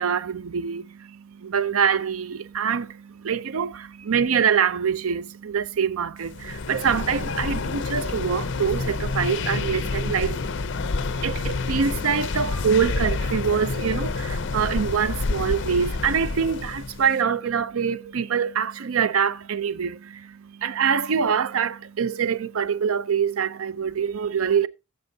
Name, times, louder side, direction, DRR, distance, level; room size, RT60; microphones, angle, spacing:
voice 1, 0.0-24.7, right 7 dB, 85° right, 0.5 m, -25 dB
sound 1, 6.3-17.1, left 3 dB, 60° left, 0.6 m, -28 dB
17.0 x 7.9 x 2.7 m
head